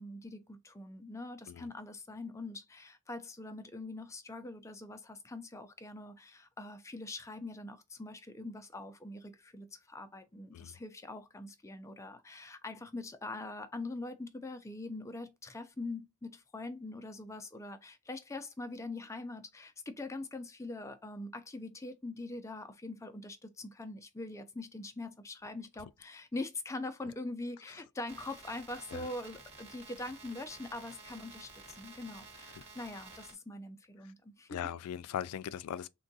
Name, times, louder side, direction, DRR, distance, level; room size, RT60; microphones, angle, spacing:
voice 1, 0.0-34.6, left 2 dB, 15° left, 0.4 m, -43 dB
sound 1, 28.1-33.3, right 3 dB, 30° right, 1.1 m, -52 dB
voice 2, 34.5-35.9, left 9 dB, 90° left, 0.3 m, -39 dB
3.6 x 2.2 x 2.6 m
head